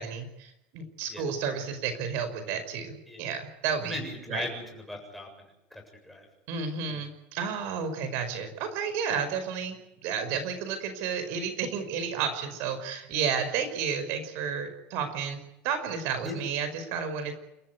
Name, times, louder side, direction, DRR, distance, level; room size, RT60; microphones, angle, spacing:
voice 1, 0.0-4.0 4.3-4.5 6.5-17.3, right 6 dB, 50° right, 9 dB, 5.3 m, -32 dB
voice 2, 3.8-6.3 6.9-7.1 16.2-16.5, left 1 dB, ahead, 1 dB, 7.5 m, -39 dB
29.0 x 14.5 x 9.3 m, 0.86 s
cardioid pair, 170°, 5 cm